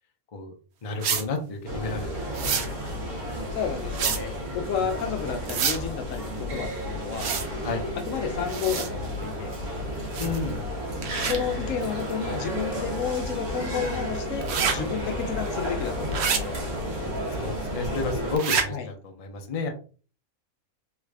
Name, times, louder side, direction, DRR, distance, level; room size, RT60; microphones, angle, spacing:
voice 1, 0.8-2.1 2.4-2.6 7.6-7.8 10.2-10.6 17.3-19.7, left 3 dB, 45° left, 3 dB, 0.5 m, -31 dB
sound 1, 1.0-1.2 2.3-2.7 3.9-4.2 5.5-5.8 7.1-7.5 8.5-8.9 10.1-10.4 11.0-11.4 14.4-14.7 16.1-16.4 18.4-18.6, right 6 dB, 65° right, 0.7 m, -27 dB
sound 2, 1.7-18.4, equal, 90° right, 1.4 m, -32 dB
voice 2, 3.5-7.3 7.9-9.5 11.2-16.6 18.7-18.9, left 7 dB, 70° left, 5 dB, 0.9 m, -31 dB
3.4 x 2.4 x 3.2 m, 0.39 s
omnidirectional pair, 1.5 m